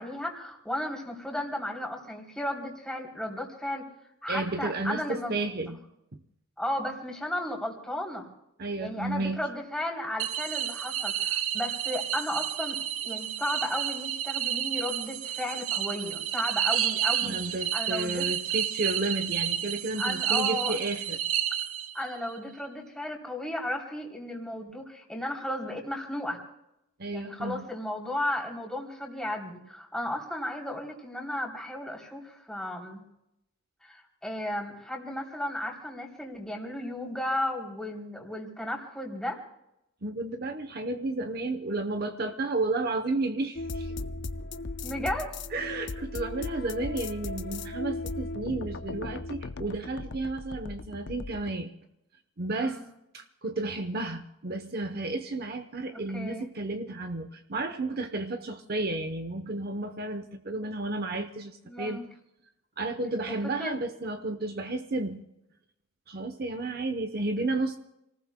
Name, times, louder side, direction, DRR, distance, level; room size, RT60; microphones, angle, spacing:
voice 1, 0.0-3.8 4.2-5.8 6.6-8.3 8.8-12.8 13.0-17.4 17.7-18.2 20.0-20.8 21.9-26.4 27.1-33.0 33.8-39.4 44.8-45.4 52.6-52.8 56.1-56.5 61.6-62.0 63.3-63.8, left 1 dB, 5° left, -2 dB, 3.1 m, -34 dB
voice 2, 4.3-5.8 6.1-6.2 8.6-9.5 17.2-21.2 27.0-27.7 40.0-43.9 45.5-51.7 52.4-52.8 53.1-62.0 62.8-65.2 66.1-67.8, right 2 dB, 45° right, 7 dB, 0.8 m, -32 dB
sound 1, 10.2-22.2, right 10 dB, 80° right, 0.8 m, -30 dB
sound 2, 43.6-51.5, left 2 dB, 55° left, 0.6 m, -37 dB
29.0 x 19.0 x 2.2 m, 0.85 s
head